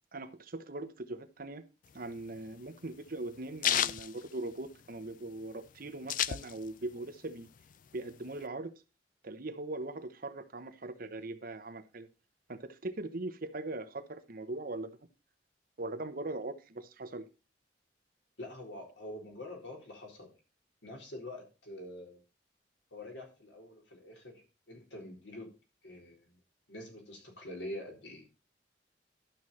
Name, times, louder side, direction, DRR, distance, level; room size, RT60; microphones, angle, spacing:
voice 1, 0.1-1.6 1.9-7.5 7.9-8.7 9.2-12.1 12.5-15.0 15.8-17.2, right 2 dB, 55° right, 1.0 m, -40 dB
sound 1, 1.9-5.0 5.4-5.5 5.6-6.9 7.3-8.4, left 10 dB, 50° left, 0.4 m, -33 dB
voice 2, 18.4-20.3 20.8-22.2 22.9-24.3 24.7-25.5 25.8-26.4 26.7-28.3, left 1 dB, 85° left, 4.1 m, -45 dB
12.0 x 6.4 x 4.2 m
head